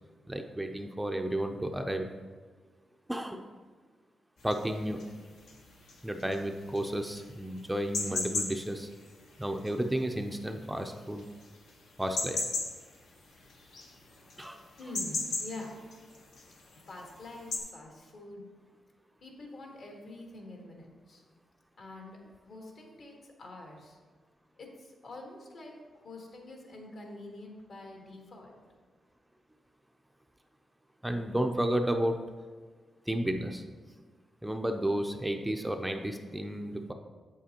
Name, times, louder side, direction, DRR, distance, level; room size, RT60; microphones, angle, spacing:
voice 1, 0.3-2.1 3.1-3.4 4.4-5.0 6.0-8.9 9.4-11.3 12.0-12.4 14.4-14.6 31.0-32.2 33.1-33.6 34.4-36.9, right 1 dB, 10° right, 5 dB, 0.4 m, -32 dB
sound 1, 4.4-17.6, left 3 dB, 85° left, 1.1 m, -38 dB
voice 2, 14.8-15.8 16.9-18.4 19.2-21.2 21.8-22.2 22.5-23.1 23.4-24.0 24.6-25.7 26.0-28.5, left 2 dB, 65° left, 0 dB, 1.5 m, -46 dB
7.8 x 7.5 x 2.9 m, 1.5 s
cardioid pair, 95°, 0 cm